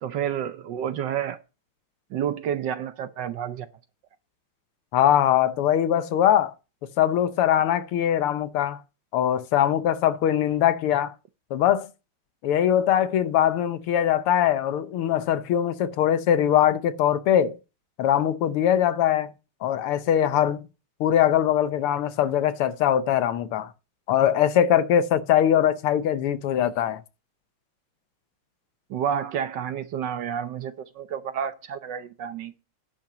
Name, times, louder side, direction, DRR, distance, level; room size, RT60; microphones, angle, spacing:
voice 1, 0.0-1.4 2.1-3.7 28.9-32.5, right 9 dB, 65° right, 1.2 m, -30 dB
voice 2, 4.9-6.5 7.0-8.8 9.1-11.1 11.5-11.9 12.4-17.6 18.0-19.3 19.6-20.6 21.0-23.7 24.1-27.0, left 10 dB, 80° left, 1.8 m, -22 dB
10.0 x 5.8 x 6.7 m
omnidirectional pair, 2.4 m